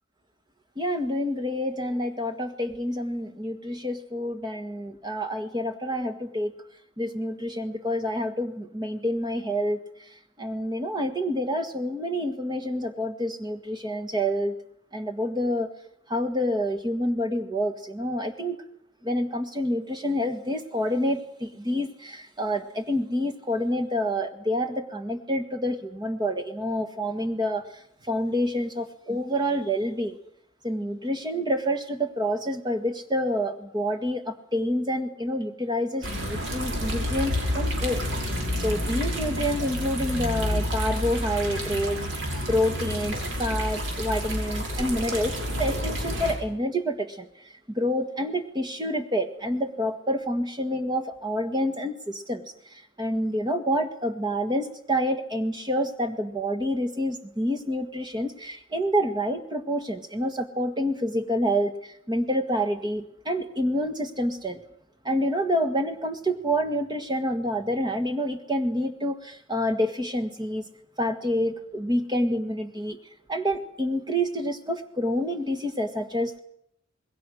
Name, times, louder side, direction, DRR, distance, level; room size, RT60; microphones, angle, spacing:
voice 1, 0.8-6.5 7.0-9.8 10.4-14.6 14.9-15.7 16.1-18.6 19.0-27.6 28.1-30.2 30.6-38.1 38.6-47.3 47.7-52.4 52.7-64.6 65.0-70.7 71.0-73.0 73.3-76.4, equal, 20° right, 6 dB, 1.8 m, -28 dB
sound 1, 36.0-46.4, equal, 70° right, 6.4 m, -29 dB
27.0 x 21.5 x 6.4 m, 0.71 s
head